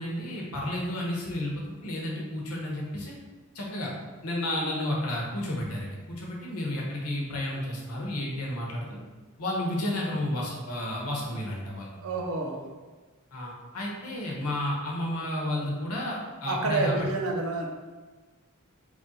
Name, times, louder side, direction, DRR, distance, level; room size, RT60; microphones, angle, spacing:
voice 1, 0.0-3.2 3.5-3.9 4.2-9.0 9.4-12.0 13.3-17.1, left 1 dB, 85° left, -2 dB, 0.9 m, -32 dB
voice 2, 12.0-12.6 16.4-17.7, right 3 dB, 70° right, 1 dB, 0.6 m, -28 dB
3.2 x 2.5 x 4.1 m, 1.3 s
head